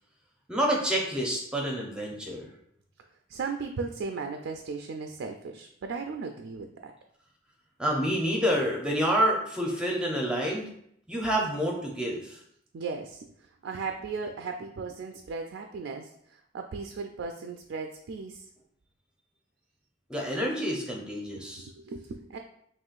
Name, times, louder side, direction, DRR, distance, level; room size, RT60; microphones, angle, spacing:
voice 1, 0.5-2.5 7.8-10.7 11.1-12.4 20.1-21.7, equal, 5° right, -1 dB, 0.6 m, -28 dB
voice 2, 3.3-6.9 12.7-13.3 13.6-16.1 16.5-18.4 21.6-22.4, right 4 dB, 70° right, 4 dB, 0.3 m, -36 dB
5.4 x 3.1 x 2.4 m, 0.69 s
head